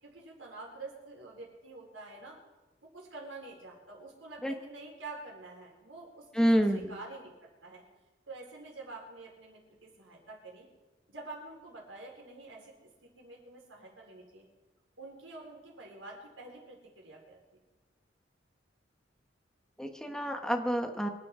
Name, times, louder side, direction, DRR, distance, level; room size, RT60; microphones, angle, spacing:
voice 1, 0.0-2.4 2.8-6.5 6.9-7.8 8.3-10.7 11.1-12.7 13.0-14.5 15.0-17.4, right 2 dB, 90° right, -1 dB, 4.4 m, -47 dB
voice 2, 6.3-6.9 19.8-21.1, equal, 5° left, 4 dB, 1.1 m, -28 dB
24.5 x 9.2 x 4.8 m, 1.1 s
head